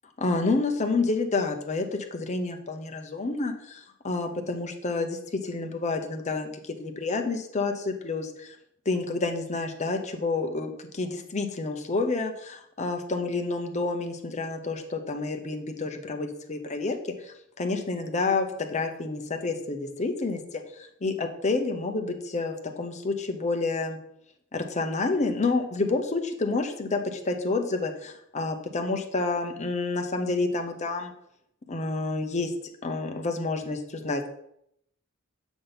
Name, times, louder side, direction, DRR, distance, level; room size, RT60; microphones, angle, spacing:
voice 1, 0.2-6.5 6.8-8.6 8.9-17.0 17.2-24.0 24.5-31.1 31.7-32.5 32.8-34.3, left 3 dB, 35° left, 4 dB, 0.8 m, -29 dB
7.0 x 3.6 x 5.7 m, 0.74 s
head